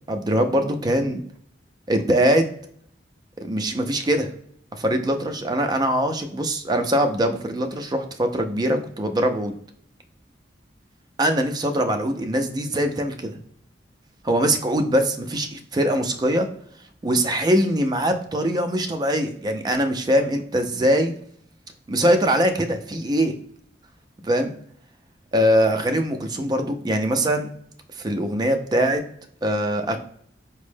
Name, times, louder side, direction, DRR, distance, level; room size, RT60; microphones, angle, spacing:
voice 1, 0.1-1.2 1.9-2.5 3.4-4.3 4.8-9.5 11.2-13.4 14.2-16.5 17.0-21.1 21.9-23.3 24.2-24.5 25.3-27.5 28.0-29.0 29.4-30.0, equal, 20° right, 6 dB, 0.4 m, -22 dB
4.3 x 2.0 x 3.2 m, 0.64 s
head